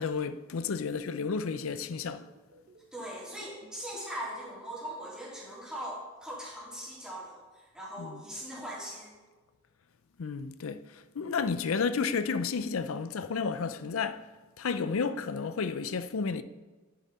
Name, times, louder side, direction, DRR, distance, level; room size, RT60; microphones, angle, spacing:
voice 1, 0.0-2.3 8.0-8.2 10.2-14.2 14.6-16.4, left 5 dB, 80° left, 0.5 m, -32 dB
sound 1, 1.4-5.0, right 2 dB, 50° right, 1.0 m, -57 dB
voice 2, 2.9-9.1, equal, 5° right, 3.1 m, -40 dB
11.0 x 7.2 x 4.2 m
head